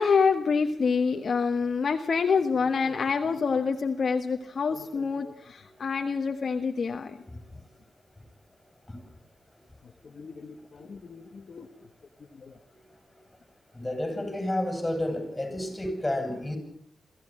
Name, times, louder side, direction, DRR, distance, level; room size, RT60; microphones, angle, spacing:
voice 1, 0.0-7.2 10.0-11.7 12.4-12.5, left 5 dB, 50° left, 4 dB, 1.4 m, -27 dB
voice 2, 13.7-16.6, left 1 dB, 10° left, 6 dB, 6.7 m, -30 dB
23.5 x 15.0 x 8.8 m, 0.67 s
wide cardioid pair, 130°, 0 cm